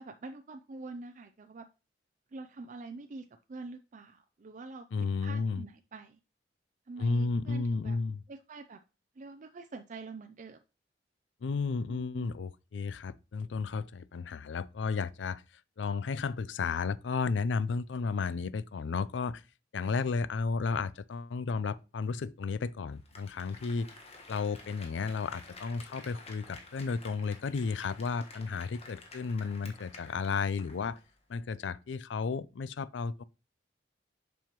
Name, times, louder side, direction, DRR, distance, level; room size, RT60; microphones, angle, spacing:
voice 1, 0.0-1.7 2.3-6.2 6.9-8.0 8.3-8.8 9.2-10.6 11.9-12.3, right 3 dB, 45° right, 0.4 m, -46 dB
voice 2, 4.9-5.6 7.0-8.2 11.4-15.4 15.8-19.4 19.7-23.9 24.3-31.0 31.3-33.2, left 4 dB, 85° left, 0.4 m, -33 dB
Applause, 22.9-31.1 31.4-31.5, left 3 dB, 35° left, 1.4 m, -51 dB
7.3 x 5.5 x 3.0 m
head